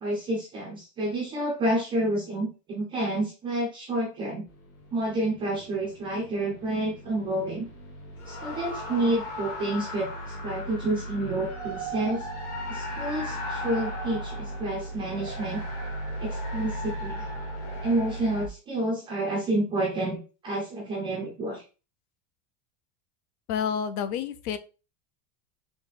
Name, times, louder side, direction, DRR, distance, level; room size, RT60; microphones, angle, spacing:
voice 1, 0.0-4.4 4.9-7.7 8.3-10.1 10.4-12.2 12.7-15.6 16.2-17.3 17.8-21.6, right 1 dB, 10° right, -2 dB, 0.3 m, -29 dB
sound 1, 4.5-18.5, equal, 40° left, 1.2 m, -36 dB
voice 2, 23.5-24.6, left 7 dB, 70° left, 12 dB, 0.7 m, -29 dB
4.0 x 2.9 x 4.0 m, 0.33 s
supercardioid pair, 175°, 45 cm